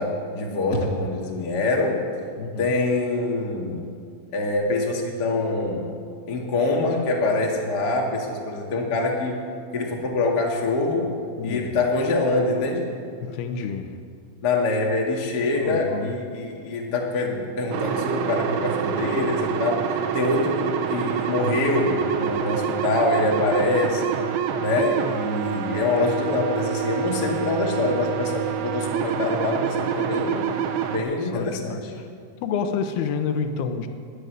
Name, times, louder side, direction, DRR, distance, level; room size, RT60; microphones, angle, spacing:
voice 1, 0.0-2.0 2.6-3.8 4.3-5.9 6.3-9.4 9.7-11.1 11.4-12.9 14.4-24.2 24.6-30.4 30.9-31.9, left 2 dB, 55° left, -1 dB, 1.1 m, -25 dB
voice 2, 2.4-2.7 11.4-11.7 13.2-14.0 15.6-16.2 31.0-31.8 32.4-33.9, left 6 dB, 75° left, 7 dB, 2.4 m, -29 dB
sound 1, 17.7-31.0, right 8 dB, 80° right, 3.3 m, -27 dB
21.0 x 8.2 x 8.0 m, 2.2 s
omnidirectional pair, 5.4 m